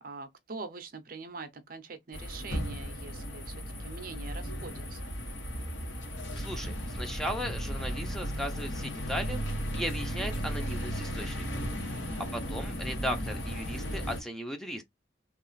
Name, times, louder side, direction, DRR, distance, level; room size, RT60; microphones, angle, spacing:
voice 1, 0.0-5.1 11.9-12.6, right 3 dB, 50° right, 0.6 m, -44 dB
sound 1, 2.1-14.2, equal, 85° left, 1.3 m, -35 dB
voice 2, 6.3-9.4 9.7-11.7 12.0-12.1 12.3-14.8, equal, ahead, 0.6 m, -37 dB
3.0 x 2.3 x 3.9 m
head